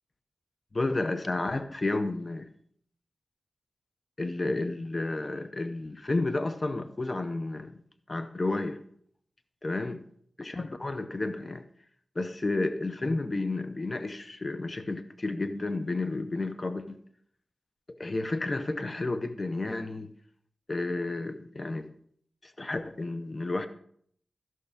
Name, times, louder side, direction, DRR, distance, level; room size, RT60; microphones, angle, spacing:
voice 1, 0.7-2.5 4.2-7.8 8.1-8.8 9.6-10.0 10.4-11.6 12.2-17.0 17.9-20.1 20.7-21.9 22.4-23.7, left 2 dB, 35° left, 0.6 m, -31 dB
13.5 x 6.1 x 3.5 m
wide cardioid pair, 85°, 0 cm